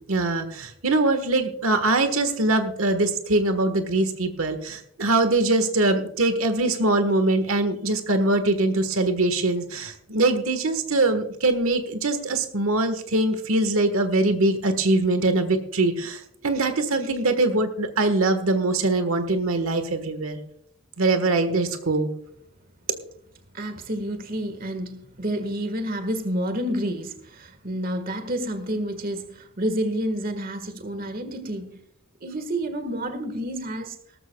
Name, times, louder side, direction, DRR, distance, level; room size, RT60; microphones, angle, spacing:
voice 1, 0.0-20.4 21.0-22.1 22.9-23.0, right 2 dB, 80° right, 8 dB, 1.5 m, -23 dB
voice 2, 23.5-31.8 32.2-33.9, right 1 dB, 45° right, 8 dB, 1.6 m, -29 dB
18.5 x 14.0 x 2.3 m, 0.69 s
head